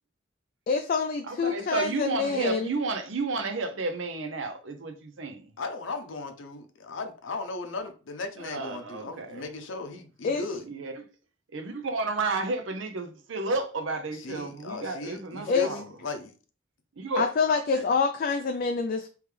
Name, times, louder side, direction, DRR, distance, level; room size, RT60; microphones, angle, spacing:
voice 1, 0.7-2.7 10.2-10.4 15.5-15.7 17.2-19.1, left 5 dB, 50° left, 0.4 m, -26 dB
voice 2, 1.3-5.5 8.4-9.4 10.7-10.9 11.5-15.8 17.0-17.3 17.8-17.9, right 3 dB, 80° right, 0.7 m, -32 dB
voice 3, 5.6-10.6 14.1-16.3, left 3 dB, 85° left, 0.6 m, -37 dB
3.5 x 3.1 x 3.3 m
head